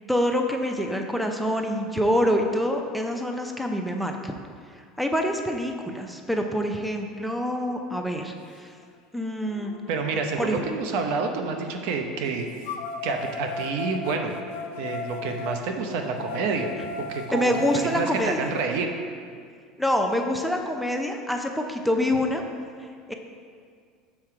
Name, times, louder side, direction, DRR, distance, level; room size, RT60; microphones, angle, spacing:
voice 1, 0.1-4.3 5.0-8.7 9.1-9.7 10.4-10.6 17.3-18.4 19.8-22.4 23.1-23.2, equal, ahead, 3 dB, 0.5 m, -26 dB
sound 1, 8.8-8.9 9.5-11.4 12.6-18.7, left 4 dB, 80° left, 0.4 m, -37 dB
voice 2, 9.9-12.7 13.0-14.4 14.8-16.7 17.0-18.9, right 4 dB, 70° right, 4 dB, 0.7 m, -28 dB
5.9 x 4.4 x 4.8 m, 2.1 s
supercardioid pair, 110°, 0 cm